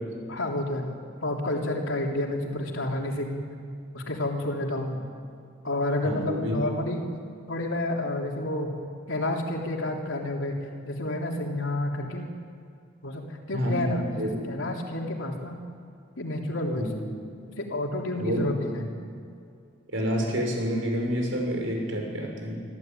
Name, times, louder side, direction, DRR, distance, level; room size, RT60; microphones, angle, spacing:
voice 1, 0.3-0.9 1.2-3.4 3.9-5.0 5.6-7.0 7.5-8.7 9.1-10.5 10.8-12.3 13.0-15.6 16.2-16.9 17.6-18.8, left 1 dB, 80° left, 1 dB, 3.4 m, -30 dB
voice 2, 6.0-6.6 13.5-14.4 16.7-17.0 18.2-18.5 19.9-22.6, equal, 80° right, 1 dB, 6.2 m, -28 dB
24.5 x 15.0 x 9.3 m, 2.4 s
head